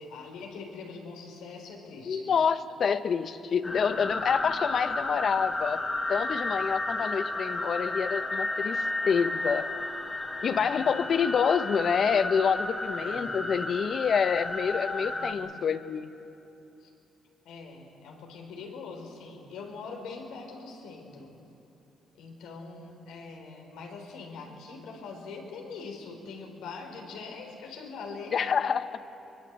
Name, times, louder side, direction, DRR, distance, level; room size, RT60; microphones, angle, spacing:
voice 1, 0.0-2.3 3.8-4.3 10.5-10.9 13.0-13.7 15.0-15.6 16.8-16.9 17.4-21.3 22.1-28.4, left 4 dB, 90° left, 2 dB, 4.0 m, -43 dB
voice 2, 2.0-5.8 6.1-9.7 10.4-16.1 28.3-29.0, left 6 dB, 55° left, 12 dB, 1.0 m, -27 dB
sound 1, 3.6-15.3, left 2 dB, 25° left, 2.5 m, -33 dB
23.5 x 22.0 x 8.2 m, 2.9 s
cardioid pair, 90°, 0 cm